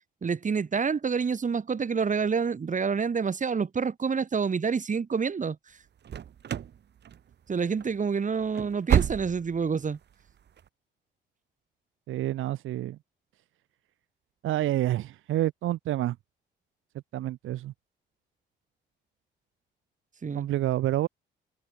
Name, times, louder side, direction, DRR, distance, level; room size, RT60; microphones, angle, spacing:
voice 1, 0.2-5.6 7.5-10.0 20.2-20.5, right 5 dB, 40° right, 7.5 m, -28 dB
sound 1, 6.0-6.8 7.0-7.5 7.8-7.9 8.4-9.6 9.9-10.0 10.6-10.7, right 9 dB, 60° right, 2.9 m, -28 dB
voice 2, 12.1-13.0 14.4-16.1 17.1-17.7 20.3-21.1, right 14 dB, 85° right, 6.6 m, -28 dB
cardioid pair, 90°, 20 cm